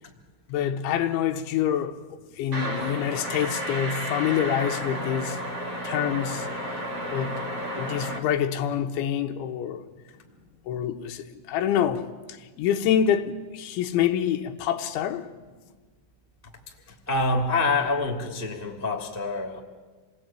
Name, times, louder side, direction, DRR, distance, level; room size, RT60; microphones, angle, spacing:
voice 1, 0.5-2.0 2.4-5.4 5.8-6.5 7.1-7.4 7.8-9.9 10.7-15.3, left 9 dB, 75° left, 3.3 m, -26 dB
sound 1, 2.5-8.2, equal, 35° right, 1.7 m, -32 dB
voice 2, 16.9-19.6, left 3 dB, 15° right, 0.5 m, -26 dB
27.5 x 20.0 x 8.9 m
omnidirectional pair, 5.6 m